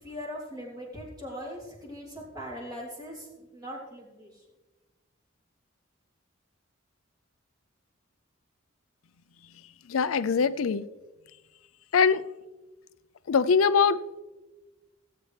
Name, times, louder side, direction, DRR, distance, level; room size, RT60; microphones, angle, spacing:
voice 1, 0.0-4.4, equal, 20° right, -4 dB, 3.2 m, -40 dB
voice 2, 9.9-10.8 11.9-12.2 13.3-14.2, left 5 dB, 90° left, 15 dB, 0.5 m, -23 dB
17.5 x 8.4 x 3.3 m, 1.2 s
head